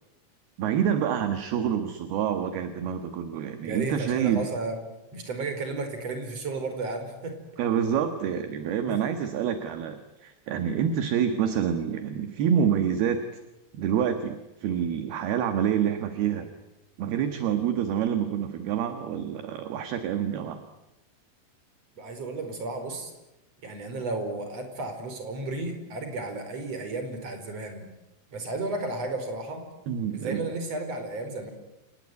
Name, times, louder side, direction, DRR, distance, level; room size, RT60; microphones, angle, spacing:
voice 1, 0.6-4.4 7.6-13.3 13.7-16.5 17.0-20.6 29.9-30.4, right 8 dB, 65° right, 8 dB, 3.0 m, -27 dB
voice 2, 3.6-4.8 5.1-7.3 8.8-9.0 22.0-23.1 23.6-27.9 28.3-29.6 30.1-31.5, right 2 dB, 30° right, 6 dB, 5.2 m, -33 dB
29.5 x 18.5 x 9.5 m, 0.97 s
omnidirectional pair, 5.7 m